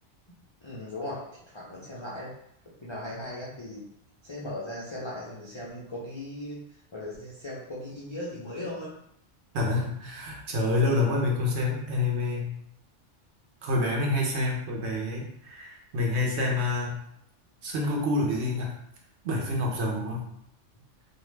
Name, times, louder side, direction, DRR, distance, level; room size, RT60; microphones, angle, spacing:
voice 1, 0.6-2.4 2.8-3.9 4.2-6.6 6.9-8.9, left 1 dB, 50° left, -7 dB, 0.3 m, -38 dB
voice 2, 9.5-12.5 13.6-17.0 17.6-18.8 19.2-20.2, left 2 dB, 70° right, -1 dB, 0.9 m, -27 dB
2.6 x 2.1 x 3.1 m, 0.72 s
omnidirectional pair, 1.2 m